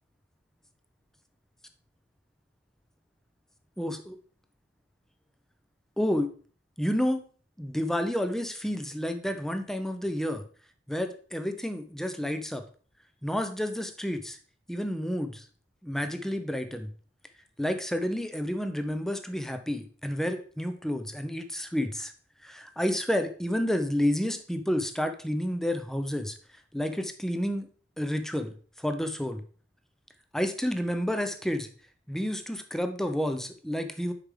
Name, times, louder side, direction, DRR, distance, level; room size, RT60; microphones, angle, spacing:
voice 1, 3.8-4.2 6.0-6.3 6.8-7.2 7.6-10.4 10.9-12.6 13.2-14.4 14.7-15.5 15.8-16.9 17.6-22.1 22.4-26.4 26.7-27.7 28.0-29.4 30.3-31.7 32.1-34.1, equal, ahead, 8 dB, 0.5 m, -30 dB
6.6 x 4.8 x 3.6 m, 0.43 s
head